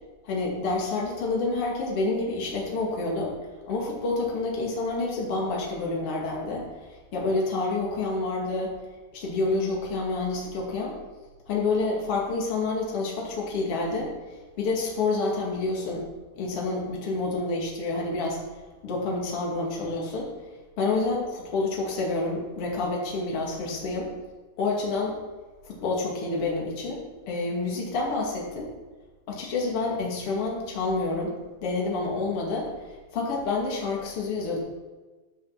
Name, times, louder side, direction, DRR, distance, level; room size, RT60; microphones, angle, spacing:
voice 1, 0.2-3.3 3.7-8.7 9.1-11.0 11.5-16.1 16.3-20.3 20.8-24.1 24.6-25.2 25.6-28.7 29.3-31.3 31.6-34.6, left 3 dB, 40° left, -2 dB, 2.3 m, -28 dB
13.5 x 6.1 x 5.9 m, 1.3 s
omnidirectional pair, 5.5 m